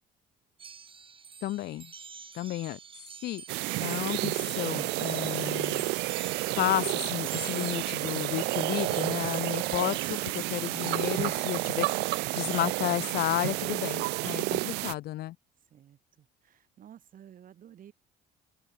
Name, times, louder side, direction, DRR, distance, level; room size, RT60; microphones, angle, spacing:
sound 1, 0.6-12.6, right 6 dB, 30° right, 2.0 m, -48 dB
voice 1, 1.4-1.9 2.3-2.8 3.2-3.4 3.8-5.8 6.6-15.4, left 15 dB, 70° left, 1.3 m, -32 dB
sound 2, 3.5-14.9, right 23 dB, 90° right, 0.4 m, -30 dB
voice 2, 15.6-17.9, right 10 dB, 55° right, 7.1 m, -53 dB
cardioid pair, 110°, 17 cm